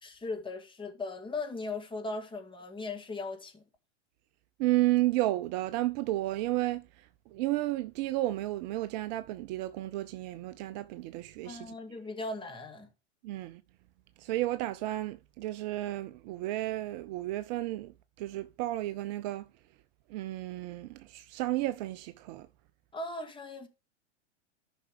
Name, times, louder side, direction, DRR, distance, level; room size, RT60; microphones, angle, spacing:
voice 1, 0.0-3.6 11.4-12.9 22.9-23.7, left 3 dB, 15° left, 2.0 m, -38 dB
voice 2, 4.6-11.7 13.2-13.6 14.2-17.9 18.2-19.5 20.1-22.5, right 16 dB, 40° right, 0.5 m, -32 dB
14.0 x 5.9 x 3.5 m
hypercardioid pair, 100°, 36 cm